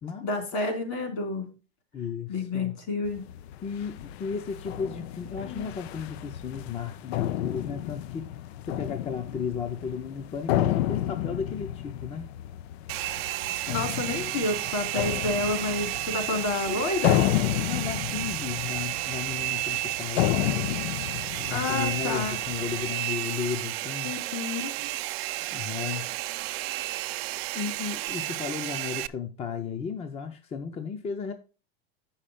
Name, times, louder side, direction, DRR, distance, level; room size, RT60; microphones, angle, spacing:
voice 1, 0.2-1.5 2.3-3.3 5.4-5.7 13.7-17.2 21.5-22.4 24.0-24.7, left 3 dB, 60° left, 3.0 m, -30 dB
voice 2, 1.9-2.8 3.6-8.3 8.6-12.3 16.3-17.4 17.7-20.8 21.4-24.2 25.5-26.1 27.5-31.3, left 6 dB, 20° left, 0.6 m, -34 dB
sound 1, 3.0-22.9, left 13 dB, 90° left, 0.5 m, -32 dB
Domestic sounds home sounds, 12.9-29.1, right 17 dB, 75° right, 0.6 m, -32 dB
8.3 x 5.7 x 5.0 m
supercardioid pair, 150°, 31 cm